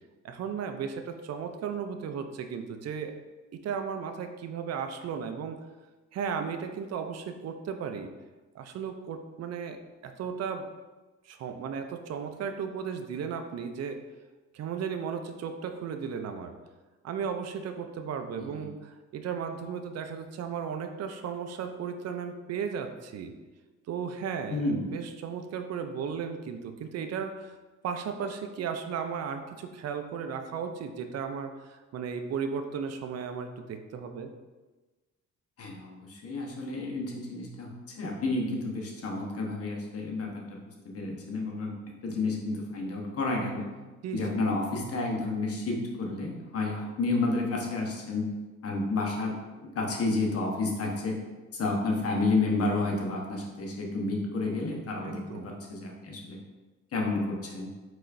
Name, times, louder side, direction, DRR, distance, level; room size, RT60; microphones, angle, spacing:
voice 1, 0.2-3.1 3.5-5.6 6.1-8.1 8.5-9.8 10.0-10.7 11.3-14.0 14.5-16.5 17.0-23.3 23.9-27.6 27.8-34.3 44.0-44.5 55.0-55.5, right 6 dB, 55° right, 7 dB, 0.5 m, -35 dB
voice 2, 24.5-24.9 35.6-37.7 38.0-40.6 40.8-41.7 42.0-43.7 44.1-48.3 48.6-49.4 49.7-51.2 51.5-56.4 56.9-57.7, left 3 dB, 50° left, 0 dB, 1.1 m, -30 dB
4.7 x 4.1 x 2.6 m, 1.2 s
cardioid pair, 90°, 30 cm